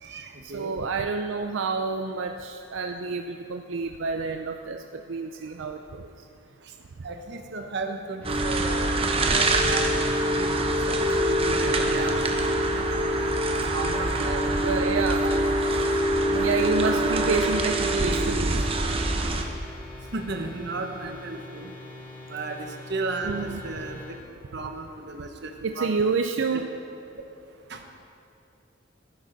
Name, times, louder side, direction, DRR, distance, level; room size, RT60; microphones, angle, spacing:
voice 1, 0.0-0.7 7.0-12.2 13.7-14.6 16.6-17.5 18.0-18.4 20.1-21.7 22.3-24.0 24.5-25.9 26.5-26.6 27.7-27.8, right 3 dB, 60° right, 5 dB, 1.1 m, -35 dB
voice 2, 0.5-4.8 5.1-6.1 14.6-15.2 16.3-18.5 23.2-23.6 25.6-26.7, right 4 dB, 85° right, 5 dB, 0.5 m, -28 dB
sound 1, 8.2-24.2, left 2 dB, 10° left, 2.5 m, -43 dB
sound 2, 8.2-19.4, right 1 dB, 30° right, 0.9 m, -24 dB
16.0 x 9.6 x 4.0 m, 2.7 s
head